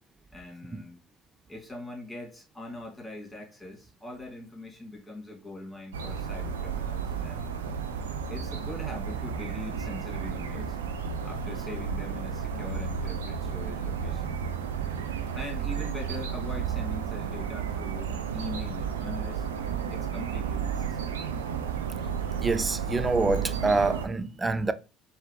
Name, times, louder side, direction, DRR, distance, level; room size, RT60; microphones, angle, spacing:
voice 1, 0.3-1.0 1.5-7.6 8.3-10.8 11.2-14.4 15.3-19.5 19.9-21.2, left 2 dB, 10° left, 2.6 m, -42 dB
sound 1, 5.9-24.1, right 7 dB, 90° right, 0.5 m, -32 dB
voice 2, 22.4-24.7, right 3 dB, 20° right, 0.5 m, -26 dB
4.7 x 3.0 x 3.0 m
hypercardioid pair, 70°, 0 cm